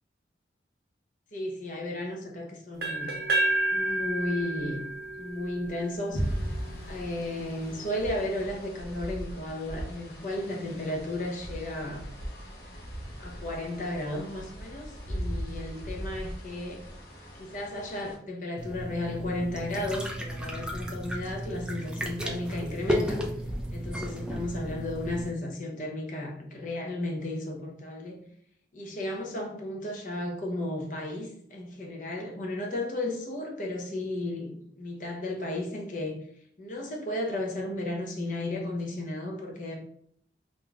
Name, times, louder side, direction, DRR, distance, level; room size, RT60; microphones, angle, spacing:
voice 1, 1.3-3.1 3.7-4.8 5.2-6.2 6.8-12.0 13.2-16.8 17.4-23.2 23.7-28.2 28.7-36.2 36.6-39.8, left 1 dB, 45° left, 0 dB, 0.7 m, -34 dB
sound 1, 2.8-6.7, right 2 dB, 65° right, 0.6 m, -30 dB
sound 2, 6.1-18.2, equal, 70° left, 0.9 m, -38 dB
sound 3, 18.6-25.3, equal, 5° right, 0.3 m, -34 dB
5.0 x 2.6 x 2.3 m, 0.69 s
head